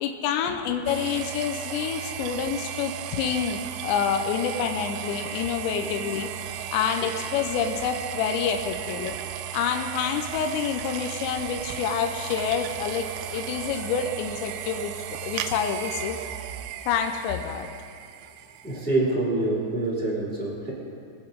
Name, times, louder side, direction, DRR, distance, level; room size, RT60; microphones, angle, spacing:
voice 1, 0.0-9.2 9.5-16.2 16.9-17.7, left 7 dB, 80° left, 5 dB, 2.7 m, -28 dB
sound 1, 0.9-18.9, right 11 dB, 85° right, 2.9 m, -35 dB
voice 2, 18.6-20.7, right 2 dB, 5° left, -5 dB, 1.6 m, -26 dB
23.5 x 8.4 x 3.9 m, 2.5 s
omnidirectional pair, 5.6 m